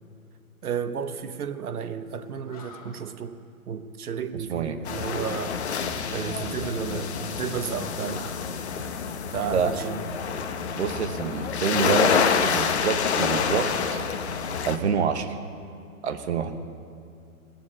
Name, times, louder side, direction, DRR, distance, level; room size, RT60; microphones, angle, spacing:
voice 1, 0.6-3.4 3.7-5.5 6.1-8.3 9.3-10.0, right 7 dB, 90° right, 11 dB, 1.1 m, -32 dB
Animal, 2.1-2.2 2.4-3.3 5.4-6.3 8.3-9.6, left 3 dB, 25° left, 1.0 m, -48 dB
voice 2, 4.3-4.8 9.5-9.7 10.8-14.0 14.6-15.4 16.0-16.6, right 6 dB, 50° right, 8 dB, 1.1 m, -27 dB
sound 1, 4.8-14.8, left 6 dB, 50° left, 1.0 m, -27 dB
16.5 x 7.2 x 9.8 m, 2.4 s
hypercardioid pair, 170°, 43 cm